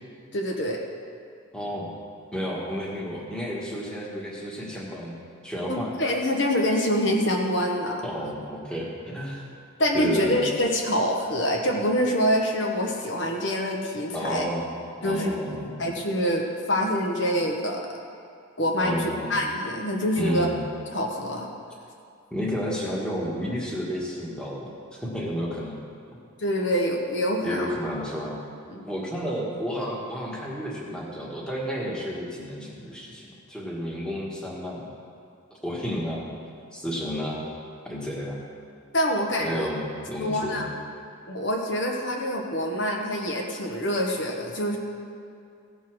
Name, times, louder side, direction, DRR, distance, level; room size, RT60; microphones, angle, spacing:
voice 1, 0.3-0.8 5.7-8.0 9.8-14.4 15.0-17.8 18.6-20.5 20.9-21.5 26.4-27.7 28.7-28.9 38.9-39.7 40.2-40.7 41.3-44.8, equal, 55° left, 0 dB, 1.2 m, -26 dB
voice 2, 1.5-1.9 2.3-5.2 5.4-5.9 8.0-9.5 9.9-10.4 14.1-14.7 15.0-15.8 18.8-19.3 20.2-20.6 22.3-25.8 27.4-28.4 28.8-34.8 35.6-36.2 36.7-37.4 37.8-38.4 39.4-40.6, equal, 5° left, -4 dB, 1.5 m, -31 dB
16.5 x 5.6 x 6.2 m, 2.5 s
head